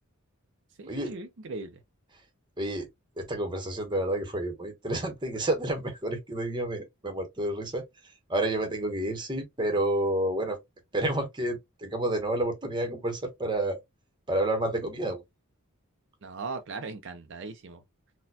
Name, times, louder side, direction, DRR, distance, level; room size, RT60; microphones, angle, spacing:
voice 1, 0.8-1.8 16.2-17.8, right 3 dB, 55° right, 0.4 m, -38 dB
voice 2, 2.6-2.9 3.2-7.8 8.3-10.6 10.9-13.8 14.3-15.2, right 1 dB, 20° right, 0.8 m, -29 dB
4.1 x 2.2 x 2.7 m
head